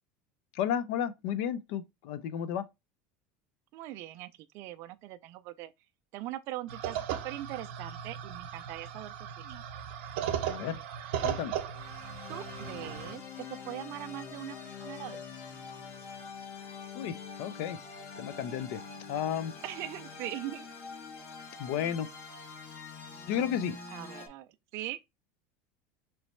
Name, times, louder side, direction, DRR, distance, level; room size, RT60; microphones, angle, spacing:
voice 1, 0.5-2.6 10.4-10.8 11.2-11.5 16.9-17.8 18.2-18.8 19.1-19.5 21.6-22.1 23.3-23.8, left 9 dB, 60° left, 0.4 m, -32 dB
voice 2, 3.7-5.7 6.1-7.0 7.2-9.6 12.3-15.2 19.6-20.7 23.9-25.0, right 14 dB, 45° right, 0.3 m, -41 dB
sound 1, 6.7-13.1, right 9 dB, 70° right, 0.7 m, -37 dB
sound 2, 11.7-24.3, left 5 dB, 35° left, 1.0 m, -45 dB
3.2 x 3.0 x 4.2 m
supercardioid pair, 160°, 6 cm